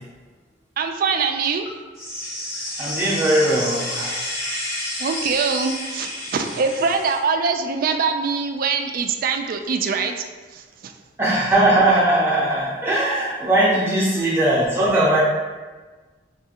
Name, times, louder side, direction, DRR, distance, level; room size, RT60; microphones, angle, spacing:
voice 1, 0.8-1.8 5.0-10.2 10.5-10.9 13.8-14.0, right 5 dB, 50° right, 5 dB, 0.3 m, -23 dB
sound 1, 2.0-7.2, left 1 dB, 55° left, 1.2 m, -30 dB
voice 2, 2.8-4.2 11.2-15.2, right 1 dB, 15° right, -8 dB, 0.6 m, -19 dB
5.4 x 2.8 x 2.4 m, 1.3 s
head